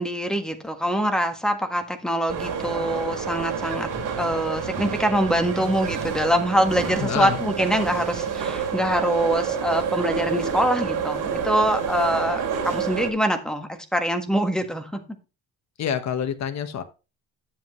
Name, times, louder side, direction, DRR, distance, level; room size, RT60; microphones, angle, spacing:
voice 1, 0.0-3.9 4.2-15.0, equal, ahead, 6 dB, 1.5 m, -24 dB
sound 1, 2.3-13.1, right 7 dB, 55° right, 2.9 m, -28 dB
voice 2, 7.0-7.4 15.8-16.8, left 8 dB, 45° left, 8 dB, 1.2 m, -27 dB
10.5 x 7.4 x 3.1 m, 0.29 s
cardioid pair, 130°, 38 cm